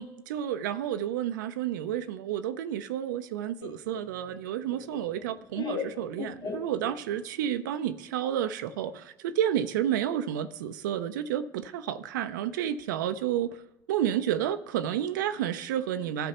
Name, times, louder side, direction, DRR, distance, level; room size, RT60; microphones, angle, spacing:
voice 1, 0.0-13.5 13.9-16.3, right 10 dB, 85° right, 0.5 m, -30 dB
Laughter, 3.6-7.3, left 5 dB, 45° left, 1.1 m, -38 dB
13.5 x 6.8 x 2.9 m
hypercardioid pair, 75°, 10 cm